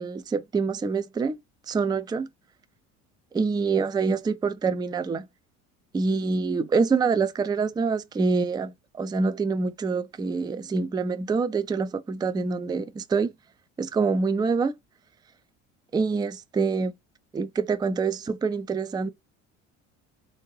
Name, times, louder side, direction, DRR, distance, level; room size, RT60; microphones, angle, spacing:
voice 1, 0.0-1.4 1.7-2.3 3.3-5.3 5.9-13.3 13.8-14.7 15.9-16.9 17.3-19.1, right 4 dB, 10° right, 0.4 m, -26 dB
3.5 x 2.7 x 3.0 m
hypercardioid pair, 70°, 39 cm